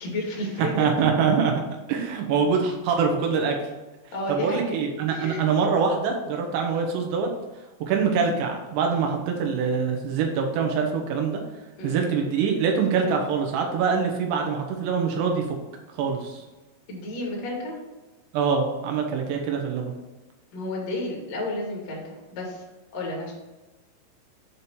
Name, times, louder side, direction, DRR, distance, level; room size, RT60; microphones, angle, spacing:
voice 1, 0.0-1.1 4.1-4.8 5.1-5.4 11.8-12.1 16.9-17.8 20.5-22.6 22.9-23.3, left 1 dB, 65° left, -3 dB, 1.7 m, -32 dB
voice 2, 0.6-1.5 1.9-3.7 4.3-7.3 7.9-11.4 11.8-15.4 16.0-16.4 18.3-19.9, right 5 dB, 80° right, 2 dB, 2.5 m, -24 dB
7.9 x 2.8 x 5.3 m, 1.1 s
omnidirectional pair, 5.9 m